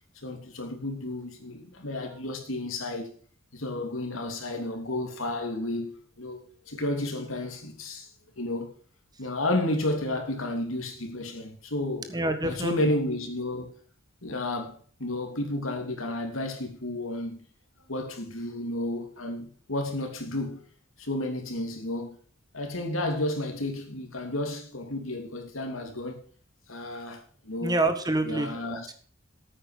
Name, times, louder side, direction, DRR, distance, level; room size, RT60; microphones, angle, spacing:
voice 1, 0.2-3.1 3.5-6.4 6.7-8.1 8.4-8.7 9.2-12.1 12.4-13.7 14.2-17.4 17.9-20.6 21.0-22.2 22.5-26.2 26.7-27.8 28.2-28.9, left 1 dB, 80° left, 3.0 m, -32 dB
voice 2, 12.1-12.7 27.6-28.9, right 2 dB, 20° right, 1.4 m, -27 dB
9.9 x 8.9 x 6.5 m
head